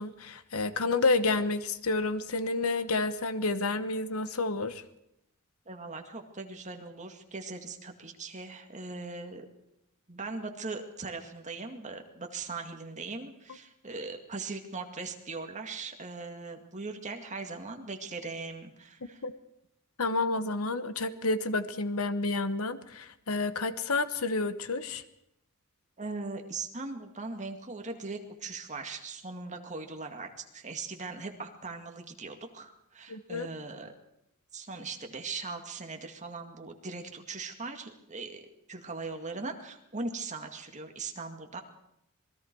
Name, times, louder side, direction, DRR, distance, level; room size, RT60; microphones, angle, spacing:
voice 1, 0.0-4.8 19.2-19.3 20.0-25.0 33.1-33.5, left 3 dB, 80° left, 12 dB, 1.2 m, -30 dB
voice 2, 5.7-9.5 10.1-19.2 26.0-33.9 34.5-38.4 38.7-41.6, right 3 dB, 35° right, 4 dB, 2.2 m, -40 dB
27.0 x 20.5 x 4.7 m, 0.80 s
head